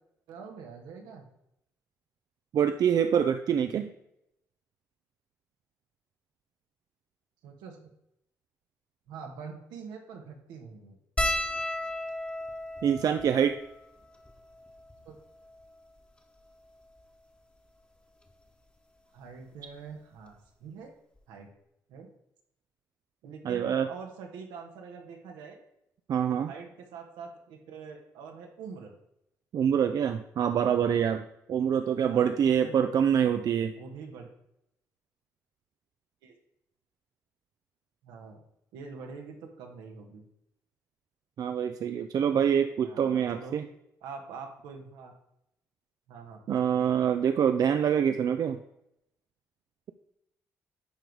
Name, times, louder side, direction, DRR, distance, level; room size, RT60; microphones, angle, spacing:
voice 1, 0.3-1.3 7.4-7.9 9.1-11.0 15.0-15.1 19.1-20.9 21.3-21.5 21.9-22.1 23.2-25.6 26.3-28.9 31.9-33.3 33.8-34.3 36.2-36.4 38.0-38.4 38.7-40.2 42.8-43.6 44.0-45.1 46.1-46.8, right 5 dB, 85° right, 3 dB, 1.3 m, -45 dB
voice 2, 2.5-3.9 12.8-13.6 23.4-23.9 26.1-26.5 29.5-33.7 41.4-43.6 46.5-48.6, right 8 dB, 60° right, 8 dB, 0.5 m, -25 dB
sound 1, 11.2-15.8 16.5-16.6 16.8-17.0 18.3-18.5 19.9-20.0 20.3-20.5, left 1 dB, 15° left, 1.2 m, -35 dB
10.5 x 3.9 x 4.6 m, 0.80 s
supercardioid pair, 60°, 7 cm